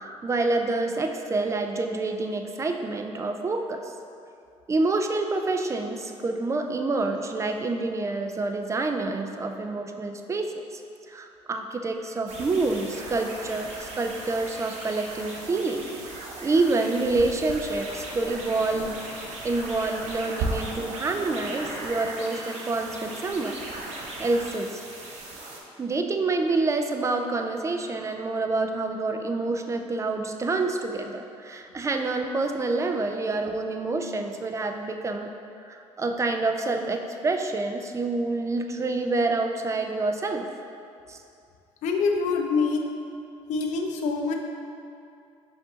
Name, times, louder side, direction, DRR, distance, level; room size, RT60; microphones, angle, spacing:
voice 1, 0.0-3.9 4.7-10.8 11.1-15.8 16.4-19.0 19.4-23.6 23.9-24.8 25.8-35.3 35.6-40.5 41.1-41.2, right 3 dB, 25° right, 5 dB, 0.4 m, -27 dB
sound 1, 12.3-25.6, right 2 dB, 65° right, 0.8 m, -37 dB
voice 2, 41.8-42.8 43.5-44.3, left 4 dB, 75° left, 3 dB, 0.5 m, -25 dB
5.2 x 2.5 x 3.9 m, 2.5 s
supercardioid pair, 80°, 12 cm